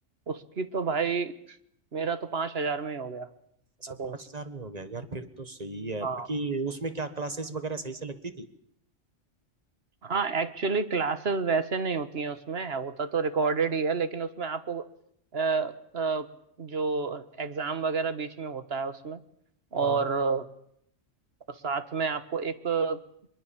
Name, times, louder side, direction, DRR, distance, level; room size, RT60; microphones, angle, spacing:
voice 1, 0.3-1.6 1.9-3.3 3.9-4.2 6.0-6.3 10.0-14.9 15.3-16.3 16.6-19.2 19.7-20.4 21.5-23.0, right 5 dB, 55° right, 12 dB, 1.6 m, -29 dB
voice 2, 3.8-8.5 19.8-20.0, right 3 dB, 30° right, 10 dB, 1.8 m, -35 dB
23.5 x 22.0 x 7.2 m, 0.70 s
omnidirectional pair, 1.3 m